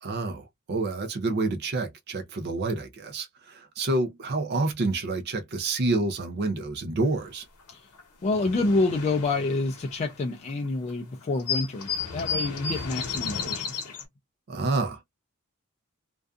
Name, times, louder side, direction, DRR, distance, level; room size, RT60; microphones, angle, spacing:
voice 1, 0.0-7.5 14.5-15.0, right 2 dB, 50° right, 0.5 m, -28 dB
sound 1, 7.7-7.8 8.0-10.5 10.9-11.0 11.2-14.0, left 5 dB, 90° left, 0.8 m, -33 dB
voice 2, 8.2-13.8, left 3 dB, 30° left, 0.3 m, -28 dB
2.5 x 2.3 x 2.3 m
head